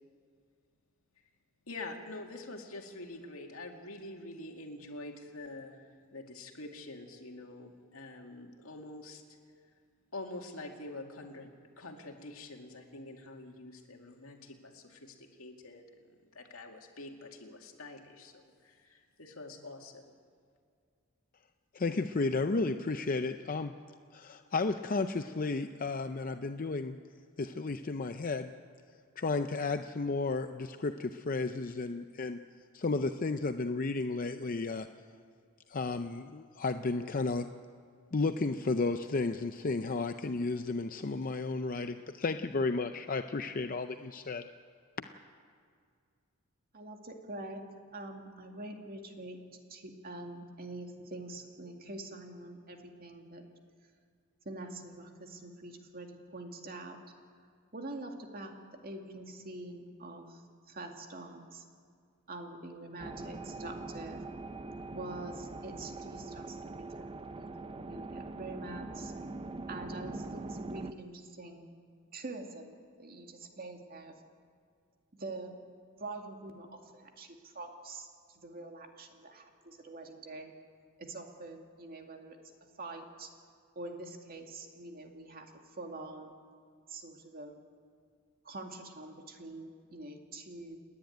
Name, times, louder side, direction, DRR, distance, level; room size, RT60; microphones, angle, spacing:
voice 1, 1.7-9.4 10.1-20.1, left 2 dB, 75° left, 3 dB, 2.3 m, -46 dB
voice 2, 21.7-23.7 24.1-27.0 27.4-28.5 29.2-32.4 32.7-34.9 35.7-37.5 38.1-44.5, left 3 dB, 40° left, 8 dB, 0.6 m, -33 dB
voice 3, 46.7-47.6 47.9-49.4 49.7-53.4 54.4-57.0 57.7-58.5 58.8-61.6 62.3-64.2 64.9-69.1 69.7-71.7 72.1-74.1 75.1-75.5 76.0-80.5 81.0-82.4 82.8-83.3 83.8-86.3 86.9-87.6 88.4-90.8, right 2 dB, 45° right, 3 dB, 2.3 m, -45 dB
sound 1, 63.0-70.9, right 2 dB, 25° right, 0.6 m, -42 dB
30.0 x 10.5 x 9.3 m, 2.2 s
head